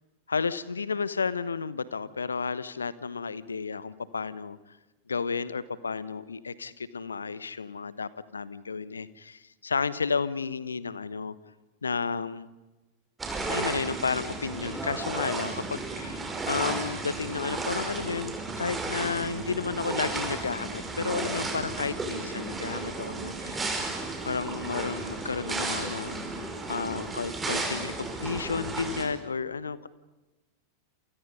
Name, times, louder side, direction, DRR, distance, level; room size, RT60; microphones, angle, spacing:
voice 1, 0.3-4.6 5.1-11.3 11.8-12.5 13.5-23.8 24.2-26.4 26.7-29.9, left 5 dB, 75° left, 18 dB, 1.0 m, -32 dB
sound 1, 13.2-29.0, right 3 dB, 15° right, 5.6 m, -34 dB
28.5 x 28.0 x 5.5 m, 1.1 s
figure-of-eight pair, 90°, 0 cm